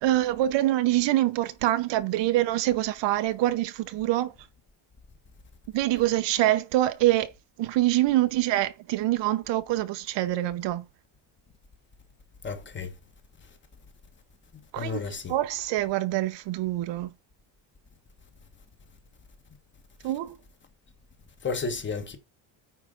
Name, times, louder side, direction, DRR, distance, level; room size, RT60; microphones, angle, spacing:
voice 1, 0.0-4.3 5.7-7.3 7.6-10.8 14.7-17.1 20.0-20.3, right 15 dB, 65° right, 0.8 m, -25 dB
voice 2, 12.4-12.9 14.8-15.3 21.4-22.2, left 5 dB, 25° left, 1.2 m, -32 dB
9.3 x 3.8 x 5.0 m
cardioid pair, 160°, 47 cm